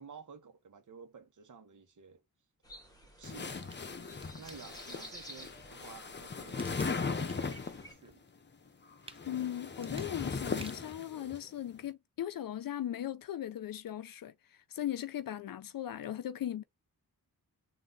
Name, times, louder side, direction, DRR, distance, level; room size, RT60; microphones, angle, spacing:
voice 1, 0.0-2.2 3.2-4.0 4.4-6.7 7.0-8.2, right 6 dB, 55° right, 1.2 m, -53 dB
sound 1, 2.6-7.9, equal, 10° left, 1.8 m, -53 dB
sound 2, 3.2-7.9 8.9-11.4, left 4 dB, 30° left, 0.7 m, -38 dB
sound 3, 3.5-5.1 5.6-7.6 8.0-11.0 11.6-11.7, right 3 dB, 15° right, 0.5 m, -54 dB
voice 2, 9.3-16.6, left 11 dB, 70° left, 0.5 m, -38 dB
3.8 x 2.7 x 3.8 m
wide cardioid pair, 85°, 36 cm